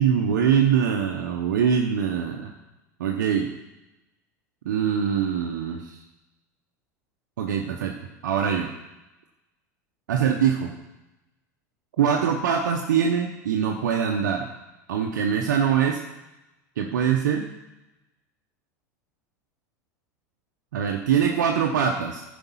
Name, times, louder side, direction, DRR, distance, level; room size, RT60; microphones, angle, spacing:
voice 1, 0.0-2.5 3.0-3.5 4.6-6.0 7.4-7.9 8.2-8.7 10.1-10.7 12.0-14.5 14.9-16.0 16.8-17.5 20.7-22.2, right 8 dB, 80° right, 2 dB, 0.8 m, -23 dB
10.5 x 5.2 x 5.6 m, 0.98 s
hypercardioid pair, 95°, 10 cm